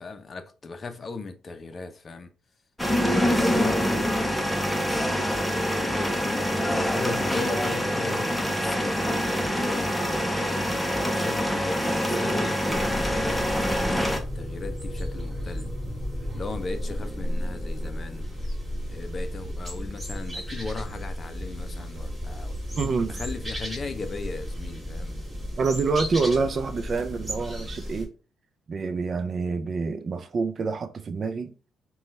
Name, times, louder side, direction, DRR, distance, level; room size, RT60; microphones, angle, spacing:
voice 1, 0.0-2.3 3.0-4.8 6.0-15.7 16.3-18.3 18.9-22.6 23.1-25.2, left 3 dB, 40° left, 0.6 m, -37 dB
sound 1, 2.8-14.2, equal, 5° left, 0.7 m, -25 dB
sound 2, 12.7-28.0, equal, 15° right, 2.0 m, -33 dB
voice 2, 22.8-23.2 25.6-28.1 28.7-31.5, right 4 dB, 45° right, 0.5 m, -27 dB
5.2 x 2.3 x 3.1 m
cardioid pair, 90°, 0 cm